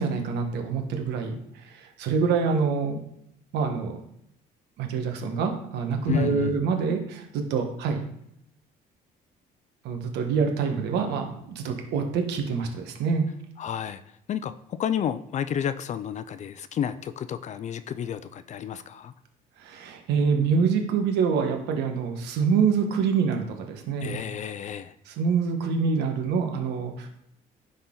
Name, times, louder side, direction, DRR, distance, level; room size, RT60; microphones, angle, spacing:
voice 1, 0.0-3.0 3.5-4.0 4.8-8.0 9.8-13.2 19.6-24.2 25.1-27.1, right 5 dB, 85° right, 4 dB, 1.4 m, -26 dB
voice 2, 6.1-6.6 13.6-14.0 14.3-19.1 24.0-24.9, left 9 dB, 45° left, 13 dB, 0.4 m, -31 dB
9.8 x 4.1 x 3.9 m, 0.75 s
cardioid pair, 110°, 17 cm